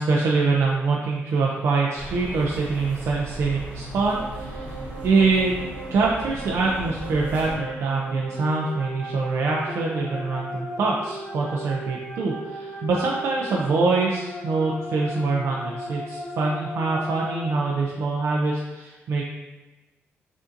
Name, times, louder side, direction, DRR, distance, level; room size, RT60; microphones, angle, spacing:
voice 1, 0.0-5.6 5.9-19.2, right 3 dB, 65° right, -3 dB, 0.4 m, -24 dB
sound 1, 1.9-7.6, right 1 dB, 35° right, 0.9 m, -37 dB
sound 2, 4.1-17.5, equal, 5° left, 0.7 m, -37 dB
5.0 x 2.6 x 2.5 m, 1.1 s
wide cardioid pair, 150°, 5 cm